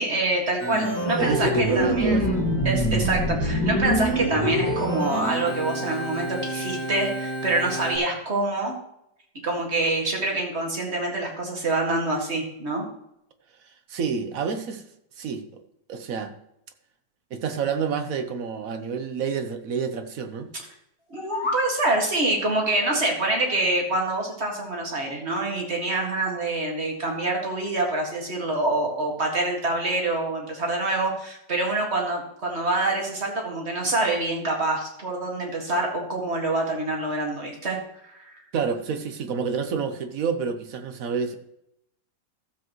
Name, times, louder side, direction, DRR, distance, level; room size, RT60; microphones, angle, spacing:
voice 1, 0.0-8.8 9.4-12.9 21.1-37.8 38.0-38.4, right 2 dB, 35° right, 1 dB, 2.2 m, -26 dB
Organ, 0.6-8.0, equal, 5° left, 1.6 m, -26 dB
voice 2, 1.2-2.4 13.9-14.8 15.2-15.6 15.9-16.3 17.3-20.5 38.5-41.3, right 5 dB, 55° right, 8 dB, 1.1 m, -28 dB
sound 1, 21.0-21.7, left 3 dB, 30° left, 0.5 m, -30 dB
14.0 x 7.5 x 3.1 m, 0.79 s
omnidirectional pair, 2.0 m